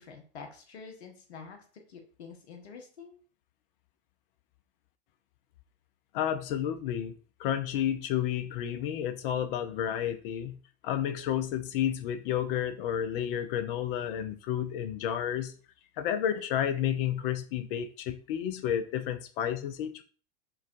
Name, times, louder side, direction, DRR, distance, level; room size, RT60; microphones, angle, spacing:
voice 1, 0.0-1.6 1.9-3.2, left 5 dB, 70° left, 4 dB, 0.9 m, -47 dB
voice 2, 6.1-7.1 7.4-10.6 10.8-15.5 16.0-20.0, left 10 dB, 55° left, 10 dB, 0.6 m, -31 dB
5.6 x 2.3 x 2.5 m, 0.39 s
hypercardioid pair, 95°, 33 cm